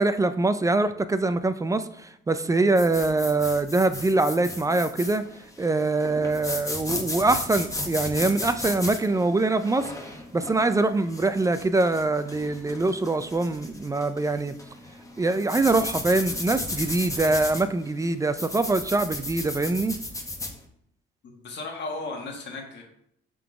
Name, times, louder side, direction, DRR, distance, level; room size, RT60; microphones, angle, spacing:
voice 1, 0.0-5.2 5.6-14.6 15.2-19.9, right 2 dB, 15° right, 11 dB, 0.3 m, -24 dB
sound 1, 2.8-20.6, left 2 dB, 15° left, 1.0 m, -35 dB
voice 2, 21.2-22.8, left 3 dB, 55° left, 1 dB, 1.6 m, -35 dB
5.7 x 3.8 x 4.7 m, 0.71 s
cardioid pair, 105°, 21 cm